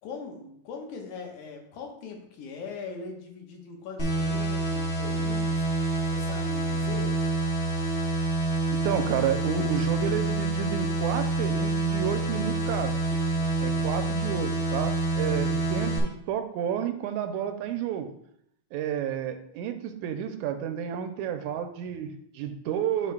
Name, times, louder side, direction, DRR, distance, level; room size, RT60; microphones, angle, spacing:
voice 1, 0.0-5.7 6.1-7.2 13.3-13.9, left 4 dB, 85° left, 2 dB, 2.6 m, -41 dB
sound 1, 4.0-16.0, right 2 dB, 45° left, 0.8 m, -27 dB
voice 2, 8.7-12.9 13.6-18.1 18.7-23.1, right 9 dB, 85° right, 8 dB, 2.0 m, -31 dB
10.5 x 5.1 x 2.2 m, 0.71 s
omnidirectional pair, 3.4 m